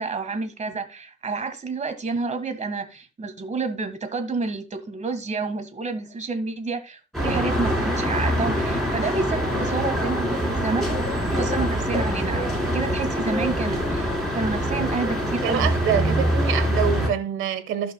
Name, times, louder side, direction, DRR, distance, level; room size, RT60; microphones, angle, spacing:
voice 1, 0.0-10.9 11.2-15.8, right 4 dB, 35° right, 1.7 m, -29 dB
sound 1, 7.1-17.1, equal, ahead, 4.2 m, -24 dB
voice 2, 15.4-17.9, right 9 dB, 85° right, 1.2 m, -26 dB
15.0 x 5.4 x 2.3 m
cardioid pair, 90°, 20 cm